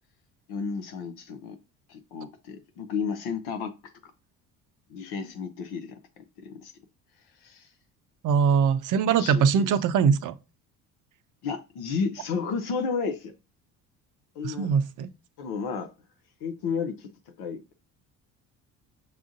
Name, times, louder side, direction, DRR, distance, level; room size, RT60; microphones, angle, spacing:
voice 1, 0.5-1.6 1.9-3.7 4.9-6.7 7.4-7.7 9.1-9.8 11.4-13.3 14.3-14.8 15.4-15.9 16.4-17.1 17.4-17.8, left 5 dB, 55° left, 0.7 m, -32 dB
voice 2, 8.2-10.4 14.4-15.1, right 6 dB, 45° right, 0.5 m, -22 dB
6.4 x 2.4 x 2.5 m
hypercardioid pair, 55°, 46 cm